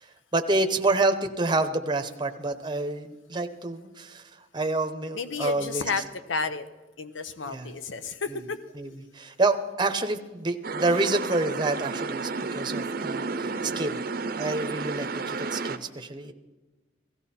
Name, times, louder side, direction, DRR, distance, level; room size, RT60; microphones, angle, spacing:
voice 1, 0.3-4.2 4.5-5.9 7.5-7.7 8.3-8.4 8.8-14.0 14.4-16.3, right 2 dB, 25° right, 7 dB, 0.8 m, -28 dB
voice 2, 5.1-6.7 7.0-8.6, left 4 dB, 90° left, 11 dB, 0.9 m, -32 dB
sound 1, 10.6-15.8, right 4 dB, 50° right, 0.7 m, -32 dB
17.0 x 14.5 x 4.3 m, 1.2 s
head